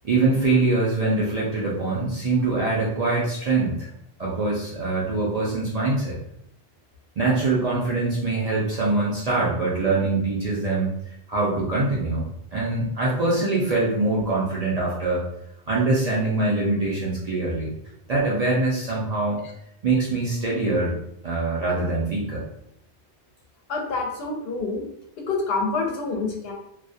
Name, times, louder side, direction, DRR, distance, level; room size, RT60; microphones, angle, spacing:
voice 1, 0.0-3.9 4.2-6.2 7.2-10.9 11.3-12.2 12.5-15.2 15.7-17.7 18.1-19.4 19.8-20.9 21.2-22.4, right 3 dB, 55° right, -5 dB, 0.5 m, -23 dB
voice 2, 23.7-24.8 25.3-26.5, left 3 dB, 70° left, 1 dB, 0.8 m, -27 dB
2.3 x 2.0 x 2.6 m, 0.75 s
omnidirectional pair, 1.1 m